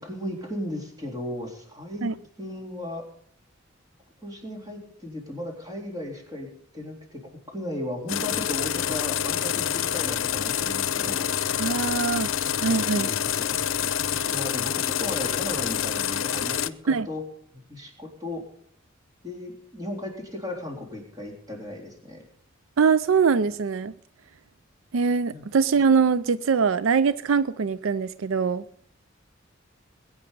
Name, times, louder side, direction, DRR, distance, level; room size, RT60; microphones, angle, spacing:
voice 1, 0.0-2.1 2.4-3.0 4.2-6.5 6.7-11.3 12.6-13.5 14.1-17.2 17.5-18.4 19.2-22.2 25.3-25.4, left 1 dB, 20° right, 0 dB, 3.8 m, -36 dB
sound 1, 8.1-16.7, left 9 dB, 80° left, 0.7 m, -27 dB
voice 2, 11.6-12.3 12.6-13.1 16.9-17.1 22.8-23.9 24.9-28.6, right 5 dB, 80° right, 16 dB, 0.5 m, -22 dB
21.0 x 8.9 x 5.4 m, 0.64 s
head